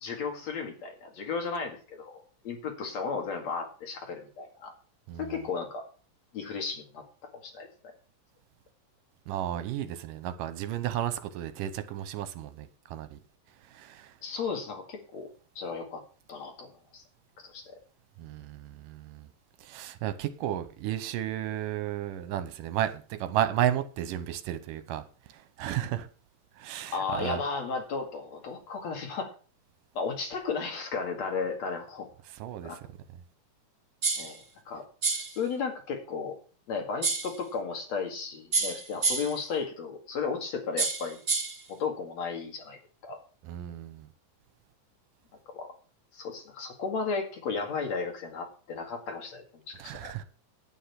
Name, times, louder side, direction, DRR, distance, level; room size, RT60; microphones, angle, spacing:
voice 1, 0.0-4.7 5.2-5.8 6.3-7.0 7.3-7.7 14.2-15.3 15.6-16.0 16.3-17.0 17.5-17.6 26.9-29.3 29.9-32.1 32.6-32.8 34.2-34.8 35.3-36.3 36.7-41.2 41.7-43.2 45.5-45.7 46.1-50.1, left 5 dB, 55° left, 3.1 m, -34 dB
voice 2, 5.1-5.4 9.3-13.2 13.7-14.1 18.2-19.3 19.6-25.0 25.3-26.1 26.6-27.4 32.4-32.8 43.4-44.1 49.8-50.2, right 11 dB, 80° right, 2.5 m, -33 dB
sound 1, 34.0-34.4 35.0-35.4 37.0-37.4 38.5-39.4 40.8-41.6, right 4 dB, 30° right, 1.9 m, -29 dB
10.0 x 9.2 x 5.8 m
omnidirectional pair, 3.9 m